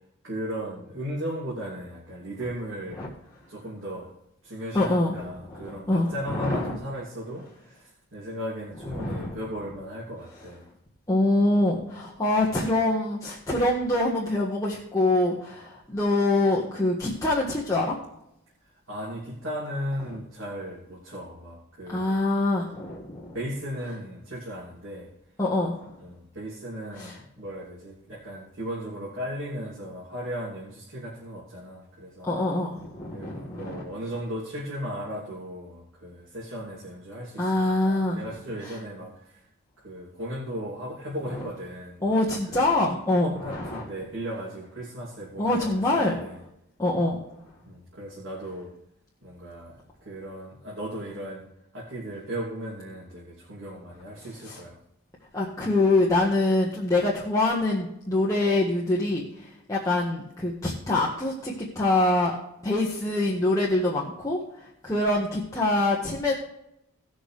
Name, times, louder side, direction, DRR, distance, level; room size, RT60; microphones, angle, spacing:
voice 1, 0.2-3.1 3.5-4.1 4.4-10.7 18.9-22.1 23.3-25.1 26.0-32.3 33.1-39.4 39.8-42.2 42.5-42.7 43.2-46.4 47.6-48.8 49.2-51.5 51.7-54.8, equal, 70° right, -6 dB, 2.9 m, -36 dB
voice 2, 4.7-6.8 8.9-9.4 11.1-18.0 21.9-23.3 25.4-25.9 26.9-27.2 32.2-33.9 37.4-38.2 38.6-38.7 41.3-41.5 42.0-43.8 45.4-46.2 46.8-47.2 54.2-54.6 55.3-62.4 62.6-66.3, left 2 dB, 15° left, -5 dB, 1.5 m, -25 dB
18.5 x 6.4 x 3.3 m, 0.81 s
head